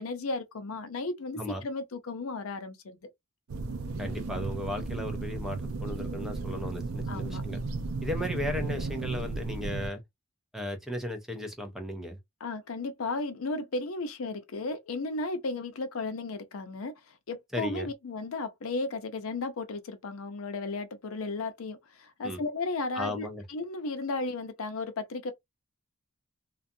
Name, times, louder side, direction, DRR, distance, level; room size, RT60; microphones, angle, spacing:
voice 1, 0.0-3.1 7.1-7.4 12.4-25.3, left 3 dB, 85° left, 0.6 m, -34 dB
sound 1, 3.5-9.9, right 3 dB, 90° right, 0.5 m, -34 dB
voice 2, 4.0-7.6 8.0-10.0 10.5-12.2 17.5-17.9 22.2-22.4 23.0-23.4, left 1 dB, ahead, 0.5 m, -35 dB
2.5 x 2.3 x 2.6 m
head